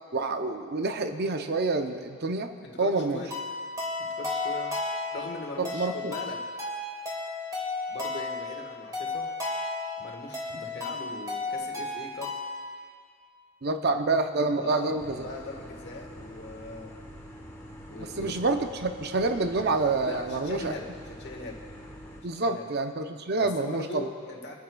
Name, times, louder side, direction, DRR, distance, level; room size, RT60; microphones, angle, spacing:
voice 1, 0.1-2.5 2.8-3.2 5.6-6.1 13.6-15.2 18.0-20.7 22.2-24.1, right 3 dB, 50° right, 7 dB, 0.6 m, -27 dB
voice 2, 2.6-3.3 4.1-4.7 5.1-6.4 7.9-9.3 10.0-12.3 13.8-14.0 14.5-17.0 17.9-18.3 20.0-21.6 22.2-22.7 23.4-24.6, left 2 dB, 55° left, 1 dB, 1.5 m, -40 dB
sound 1, 3.3-12.7, left 3 dB, 15° right, 2.1 m, -34 dB
sound 2, 15.0-22.2, equal, 10° left, 1.3 m, -45 dB
28.0 x 9.3 x 2.3 m, 2.1 s
head